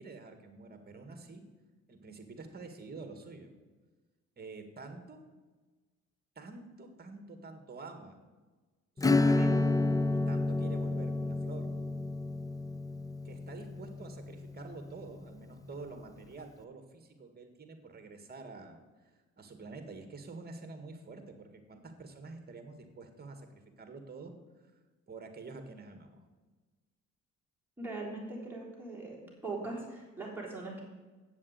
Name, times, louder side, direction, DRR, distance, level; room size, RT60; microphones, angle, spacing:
voice 1, 0.0-1.4 1.9-3.5 4.4-5.2 6.4-8.2 9.0-9.7 10.1-11.7 13.2-18.8 19.4-24.3 25.1-26.2, right 3 dB, 30° right, 6 dB, 1.8 m, -48 dB
Acoustic guitar / Strum, 9.0-15.2, left 2 dB, 10° left, 0.5 m, -30 dB
voice 2, 27.8-30.8, right 2 dB, 5° right, -4 dB, 3.9 m, -40 dB
8.3 x 7.3 x 8.2 m, 1.3 s
cardioid pair, 90°, 30 cm